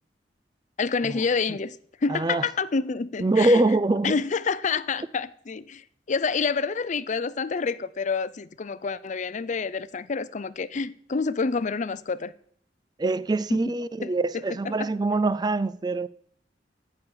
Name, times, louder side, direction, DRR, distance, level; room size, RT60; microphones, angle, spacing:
voice 1, 0.8-3.6 4.0-12.3 13.5-13.7 14.0-14.1 14.6-14.9, left 5 dB, 45° left, 0.5 m, -28 dB
voice 2, 2.1-2.5 3.2-4.2 13.0-16.1, right 2 dB, 25° right, 0.4 m, -24 dB
13.5 x 5.8 x 7.8 m
head